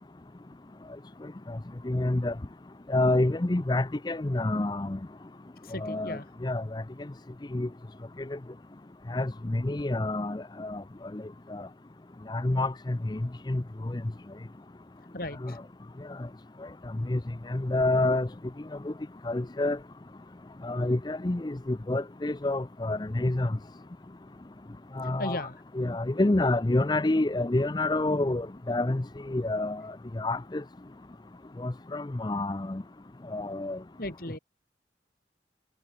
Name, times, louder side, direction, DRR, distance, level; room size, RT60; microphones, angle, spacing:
voice 1, 1.8-2.3 2.9-5.0 5.8-6.8 7.5-7.7 8.3-8.4 9.1-10.8 11.1-11.2 11.5-11.6 12.3-13.2 13.5-13.6 13.9-14.0 15.4-15.5 17.1-17.2 17.5-18.3 18.9-19.0 19.2-19.8 20.6-23.6 25.0-25.4 25.8-29.8 30.2-30.6 31.6-32.8 33.3-33.8, left 2 dB, 25° left, 0.5 m, -28 dB
voice 2, 5.6-6.3 15.1-15.6 25.2-25.6 34.0-34.4, left 1 dB, 55° left, 6.0 m, -36 dB
head